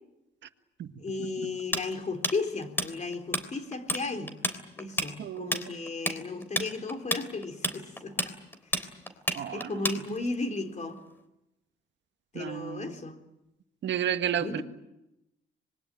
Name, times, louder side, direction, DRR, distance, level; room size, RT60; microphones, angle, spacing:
voice 1, 1.0-4.4 4.8-8.1 9.5-11.0 12.3-13.2 14.4-14.6, left 3 dB, 35° left, 3.9 m, -34 dB
Tools, 1.7-3.4 3.7-4.0 4.3-10.3, left 1 dB, 10° left, 3.4 m, -30 dB
voice 2, 5.2-5.8 9.3-9.7 12.3-12.9 13.8-14.6, right 9 dB, 65° right, 1.7 m, -32 dB
25.5 x 21.5 x 9.1 m
cardioid pair, 90°, 20 cm